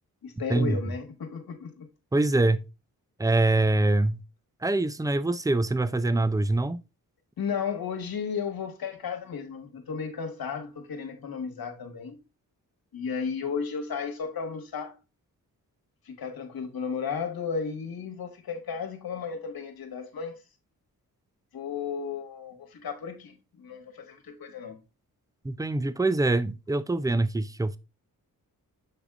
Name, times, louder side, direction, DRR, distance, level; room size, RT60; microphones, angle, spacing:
voice 1, 0.2-1.9 7.4-12.2 12.9-15.0 16.0-20.4 21.5-24.8, left 6 dB, 75° left, 1.4 m, -34 dB
voice 2, 2.1-2.6 3.2-4.2 4.6-6.8 25.4-27.8, right 2 dB, 10° right, 0.5 m, -24 dB
7.5 x 3.6 x 3.5 m
cardioid pair, 60°, 36 cm